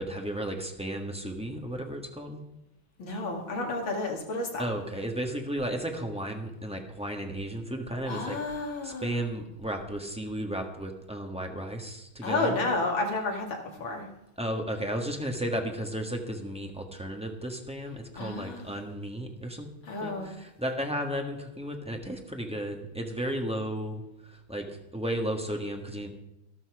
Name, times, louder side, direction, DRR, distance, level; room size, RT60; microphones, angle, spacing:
voice 1, 0.0-2.4 4.6-12.6 14.4-19.7 20.0-24.6 24.9-26.1, right 1 dB, 5° right, 2 dB, 1.1 m, -34 dB
voice 2, 3.0-4.6 8.1-9.2 12.2-13.5 13.8-14.0 18.2-18.7 19.9-20.3, left 2 dB, 65° left, 1 dB, 3.1 m, -31 dB
13.0 x 12.5 x 4.8 m, 0.90 s
omnidirectional pair, 2.3 m